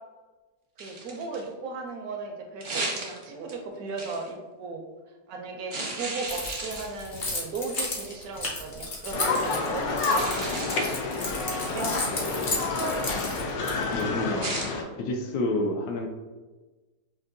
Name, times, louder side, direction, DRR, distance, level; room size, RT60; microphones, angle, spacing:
sound 1, 0.8-1.5 2.6-3.5 4.0-4.3 5.7-7.2 8.0-8.2 10.0-11.1 14.4-14.7, right 2 dB, 50° right, 0.6 m, -34 dB
voice 1, 0.8-4.8 5.3-10.9 11.4-12.4, right 3 dB, 70° right, 2 dB, 0.9 m, -36 dB
Keys jangling, 6.3-14.0, left 2 dB, 45° left, 0.7 m, -33 dB
sound 2, 9.1-14.8, left 3 dB, 90° left, 1.3 m, -29 dB
voice 2, 13.9-14.5 15.0-16.1, left 2 dB, 70° left, 3 dB, 1.0 m, -29 dB
5.3 x 2.5 x 2.5 m, 1.2 s
omnidirectional pair, 1.9 m